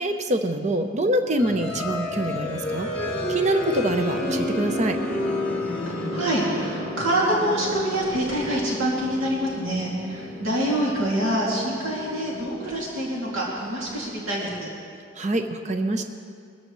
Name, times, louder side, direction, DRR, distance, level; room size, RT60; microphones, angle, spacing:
voice 1, 0.0-2.9 3.3-5.0 15.2-16.0, right 1 dB, 35° right, 6 dB, 0.7 m, -25 dB
sound 1, 1.4-13.9, left 1 dB, 5° left, 3.0 m, -31 dB
voice 2, 6.1-14.7, right 1 dB, 70° right, -5 dB, 2.4 m, -26 dB
21.5 x 14.0 x 3.1 m, 2.3 s
head